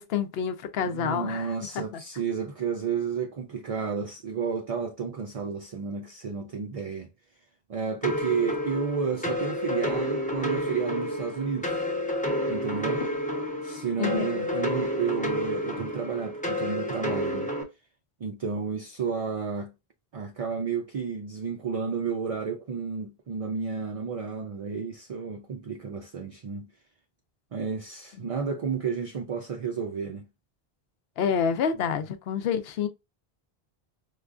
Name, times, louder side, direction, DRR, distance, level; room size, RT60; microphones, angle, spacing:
voice 1, 0.0-1.5 14.0-14.5 28.2-28.3 31.2-32.9, left 7 dB, 75° left, 0.8 m, -28 dB
voice 2, 0.9-7.1 7.7-11.9 12.5-13.0 13.6-17.5 18.2-19.7 20.1-26.7 27.5-30.3, right 6 dB, 55° right, 0.4 m, -31 dB
sound 1, 8.0-17.6, left 1 dB, 10° left, 0.5 m, -30 dB
4.8 x 2.2 x 2.3 m
omnidirectional pair, 1.0 m